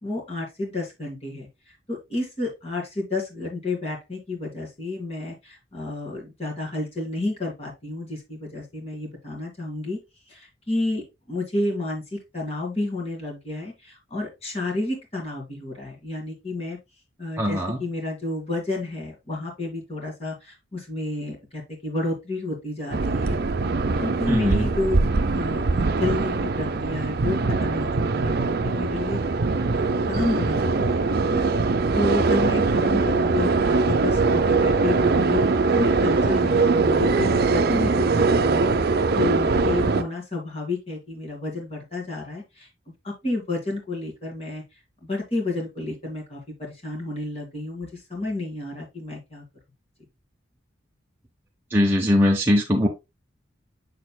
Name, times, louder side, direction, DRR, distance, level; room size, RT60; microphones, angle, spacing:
voice 1, 0.0-1.5 1.9-10.0 10.3-16.8 17.2-23.4 24.0-25.0 25.3-29.2 29.7-31.4 31.9-35.4 35.7-38.7 39.1-42.7 43.0-44.6 45.0-49.4, left 2 dB, 30° left, -1 dB, 2.1 m, -30 dB
voice 2, 17.4-17.8 24.3-24.7 51.7-52.9, left 1 dB, 10° right, -2 dB, 0.8 m, -20 dB
sound 1, 22.9-40.0, right 3 dB, 50° right, 0.5 m, -22 dB
6.7 x 6.6 x 2.2 m, 0.23 s
head